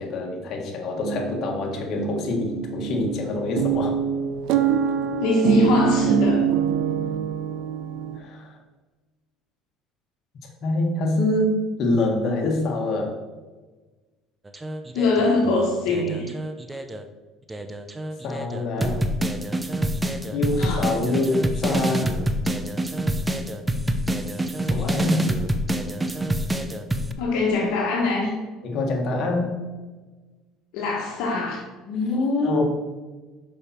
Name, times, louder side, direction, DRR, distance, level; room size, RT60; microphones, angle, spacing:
voice 1, 0.0-4.0 8.2-8.5 10.6-13.2 18.2-19.0 20.3-22.1 24.7-25.3 28.6-29.6 31.9-32.6, left 2 dB, 55° left, 0 dB, 1.6 m, -25 dB
sound 1, 1.0-8.2, right 7 dB, 70° right, 0.5 m, -24 dB
voice 2, 5.2-6.4 14.9-16.3 20.6-20.9 27.2-28.3 30.7-31.6, left 2 dB, 75° left, -1 dB, 1.3 m, -22 dB
sound 2, 14.5-17.0 17.5-27.1, right 1 dB, 15° right, 0.6 m, -26 dB
6.5 x 5.3 x 4.3 m, 1.3 s
supercardioid pair, 95°, 0 cm